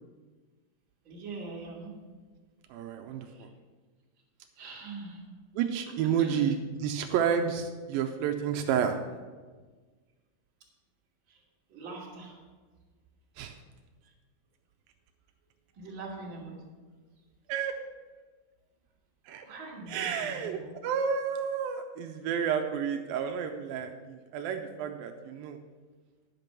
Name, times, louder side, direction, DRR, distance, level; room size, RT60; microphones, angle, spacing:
voice 1, 1.0-1.9 3.3-3.4 4.6-5.2 6.2-6.4 11.3-11.4 11.7-12.4 14.0-14.1 15.7-16.6 19.5-20.7, right 3 dB, 40° right, -3 dB, 2.5 m, -42 dB
voice 2, 2.7-3.5 5.6-9.0 13.4-13.6 17.5-17.7 19.3-19.5 19.9-25.6, right 7 dB, 85° right, 5 dB, 2.4 m, -30 dB
10.5 x 5.9 x 6.7 m, 1.4 s
omnidirectional pair, 4.1 m